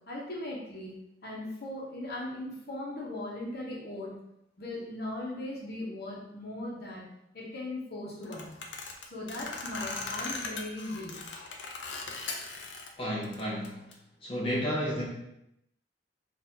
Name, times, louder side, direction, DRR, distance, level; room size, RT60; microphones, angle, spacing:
voice 1, 0.1-0.9 1.2-4.1 4.6-7.1 7.3-8.5 9.1-11.3, left 1 dB, 60° left, -4 dB, 1.0 m, -38 dB
sound 1, 8.2-12.9 13.2-13.9, left 3 dB, 85° left, 0.5 m, -39 dB
voice 2, 13.0-13.8 14.2-15.0, equal, 30° left, -7 dB, 0.8 m, -31 dB
3.9 x 2.5 x 2.8 m, 0.82 s
head